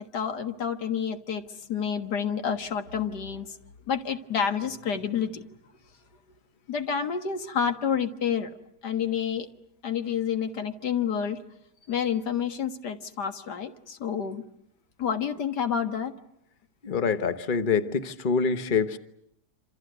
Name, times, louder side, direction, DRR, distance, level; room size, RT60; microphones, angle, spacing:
voice 1, 0.0-1.4 1.7-3.5 3.9-5.5 6.7-8.5 8.8-9.5 9.8-11.4 11.9-14.4 15.0-16.1, left 7 dB, 90° left, 2.2 m, -29 dB
voice 2, 16.8-19.0, left 5 dB, 35° left, 1.2 m, -25 dB
27.5 x 27.0 x 8.0 m
omnidirectional pair, 1.7 m